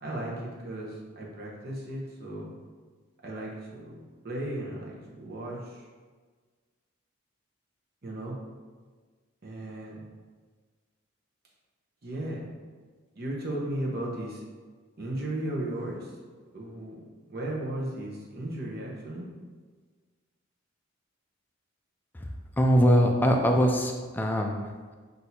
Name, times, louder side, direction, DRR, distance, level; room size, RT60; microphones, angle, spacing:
voice 1, 0.0-2.5 3.2-5.9 8.0-8.4 9.4-10.0 12.0-12.5 13.2-14.4 15.0-16.2 16.5-19.3, right 1 dB, 50° right, -3 dB, 0.8 m, -35 dB
voice 2, 22.6-24.9, equal, 10° left, 2 dB, 0.3 m, -23 dB
6.0 x 2.6 x 2.7 m, 1.5 s
head